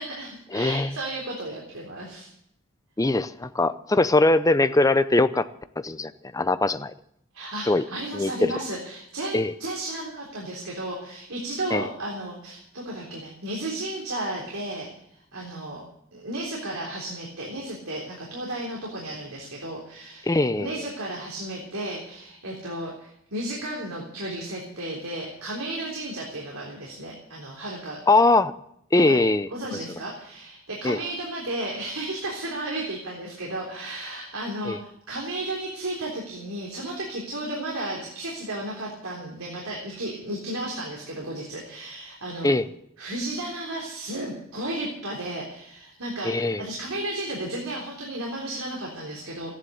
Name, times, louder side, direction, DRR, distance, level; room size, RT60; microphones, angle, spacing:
voice 1, 0.0-2.3 7.3-14.9 15.3-15.8 16.1-20.3 20.6-28.0 28.9-29.2 29.5-42.5 43.0-49.5, right 1 dB, 85° right, -2 dB, 3.6 m, -33 dB
voice 2, 0.5-0.9 3.0-5.5 5.8-6.9 7.7-7.8 8.1-8.5 9.3-9.5 11.7-11.8 20.3-20.7 28.1-28.5 28.9-29.5 30.8-31.0 34.7-34.8 42.4-42.6 46.2-46.6, left 2 dB, 15° left, 13 dB, 0.6 m, -21 dB
14.5 x 10.5 x 8.0 m, 0.73 s
head